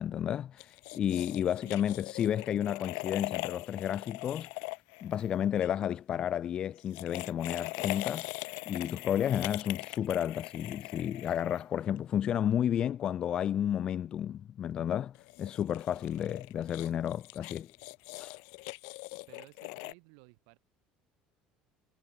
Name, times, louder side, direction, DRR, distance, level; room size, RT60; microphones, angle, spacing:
voice 1, 0.0-4.5 5.0-17.7 18.2-18.4, left 10 dB, 30° left, 0.8 m, -32 dB
sound 1, 0.6-5.7 6.8-12.0 15.1-19.9, left 40 dB or more, 85° left, 1.4 m, -41 dB
voice 2, 19.3-20.6, right 40 dB or more, 85° right, 6.7 m, -56 dB
cardioid pair, 175°, 3 cm